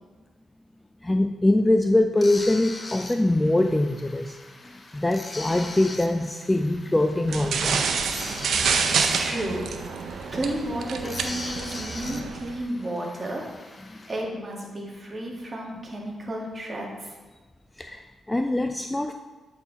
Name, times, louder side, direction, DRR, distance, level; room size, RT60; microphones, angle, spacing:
voice 1, 1.0-4.4 4.6-7.8 13.9-14.0 17.8-19.1, left 1 dB, 15° left, 5 dB, 0.3 m, -23 dB
sound 1, 2.2-14.2, left 2 dB, 35° left, 0.8 m, -41 dB
sound 2, 7.3-12.6, right 5 dB, 75° right, 0.6 m, -27 dB
voice 2, 9.1-9.6 10.0-13.4 14.1-17.2, right 1 dB, 25° right, -2 dB, 1.8 m, -32 dB
8.4 x 4.5 x 4.0 m, 1.3 s
cardioid pair, 90°, 0 cm